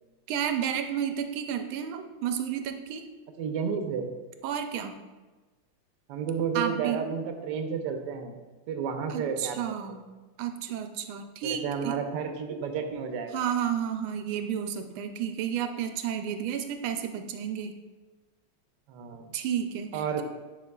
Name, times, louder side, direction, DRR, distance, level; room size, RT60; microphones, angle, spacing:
voice 1, 0.3-3.1 4.4-5.0 6.5-7.0 9.1-10.0 10.4-11.9 13.3-17.8 19.3-20.2, right 9 dB, 90° right, 7 dB, 1.4 m, -31 dB
voice 2, 3.4-4.1 6.1-8.4 8.7-9.6 11.4-13.4 18.9-19.3 19.9-20.2, right 6 dB, 70° right, 5 dB, 1.2 m, -31 dB
9.6 x 5.3 x 2.3 m, 1.2 s
omnidirectional pair, 2.2 m